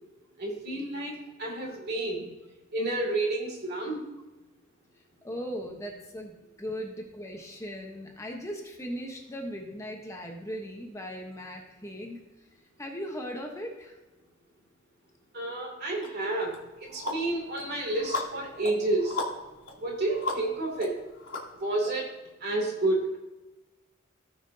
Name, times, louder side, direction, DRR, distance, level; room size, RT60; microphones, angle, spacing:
voice 1, 0.4-2.3 2.7-4.0 15.3-16.5 16.9-19.2 19.8-21.0 21.6-22.1 22.4-23.2, right 2 dB, 50° right, -1 dB, 2.7 m, -30 dB
voice 2, 5.2-12.2 12.8-14.0, equal, 15° left, 1 dB, 1.0 m, -38 dB
sound 1, 16.0-16.1 16.5-21.9, left 2 dB, 80° left, 2.4 m, -37 dB
17.0 x 6.0 x 2.8 m, 1.1 s
head